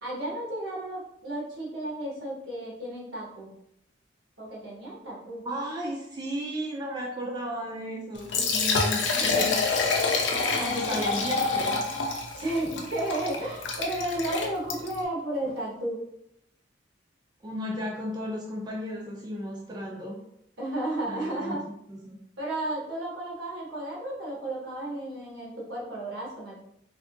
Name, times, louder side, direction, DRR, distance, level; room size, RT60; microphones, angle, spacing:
voice 1, 0.0-3.5 4.4-5.4 10.2-11.4 12.3-16.0 20.6-21.6 22.4-26.6, right 1 dB, 85° right, -5 dB, 1.3 m, -33 dB
voice 2, 5.4-9.7 10.6-11.8 17.4-20.2 21.0-21.6 21.9-22.2, equal, 25° right, -2 dB, 0.4 m, -34 dB
Liquid, 8.2-15.0, left 4 dB, 75° left, 0.6 m, -27 dB
sound 1, 9.3-10.0 10.4-11.8 12.2-12.3 12.7-13.6 14.3-15.0 15.3-15.7, equal, 25° left, 0.8 m, -48 dB
3.5 x 2.6 x 2.5 m, 0.77 s
head